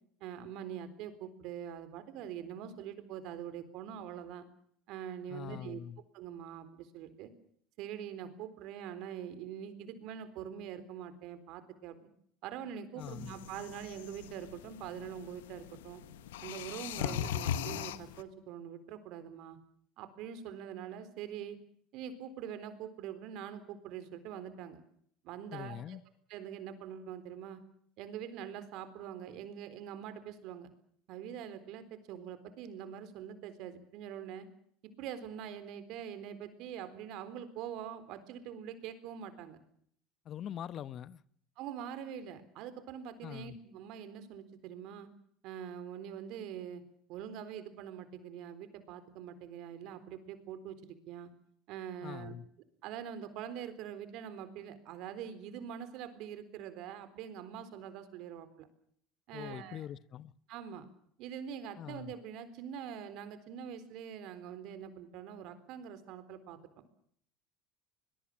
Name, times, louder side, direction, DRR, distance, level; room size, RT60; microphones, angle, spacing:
voice 1, 0.2-4.5 4.9-5.8 6.1-7.3 7.8-12.1 12.4-16.0 16.4-19.6 20.0-21.6 21.9-24.8 25.2-26.0 26.3-27.6 28.0-30.7 31.1-34.5 35.0-39.6 41.6-45.1 45.4-46.8 47.1-51.3 51.7-52.4 52.8-58.7 59.3-59.9 60.5-60.8 61.2-66.6, right 9 dB, 65° right, 3.9 m, -44 dB
voice 2, 5.3-6.0 13.0-13.3 17.0-17.3 25.5-26.0 40.2-41.2 43.2-43.6 52.0-52.5 59.3-60.3 61.8-62.1, left 10 dB, 50° left, 1.1 m, -43 dB
sound 1, 13.0-18.2, left 10 dB, 85° left, 1.4 m, -40 dB
22.5 x 22.0 x 7.4 m
hypercardioid pair, 85°, 0 cm